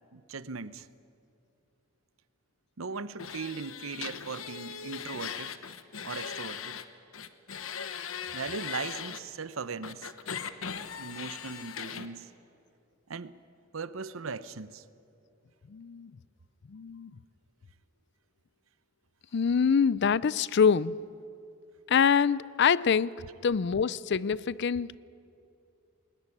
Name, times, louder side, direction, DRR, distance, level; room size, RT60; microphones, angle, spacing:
voice 1, 0.1-0.9 2.8-5.6 6.0-6.8 8.3-10.1 11.0-12.3 13.1-13.4 13.7-14.8, right 4 dB, 80° right, 0.8 m, -38 dB
sound 1, 3.2-6.8 7.1-9.2 9.8-12.1, left 7 dB, 90° left, 1.1 m, -39 dB
voice 2, 15.7-16.2 16.7-17.2 19.3-21.0 21.9-25.0, left 6 dB, 55° left, 0.5 m, -25 dB
21.0 x 19.5 x 9.8 m
head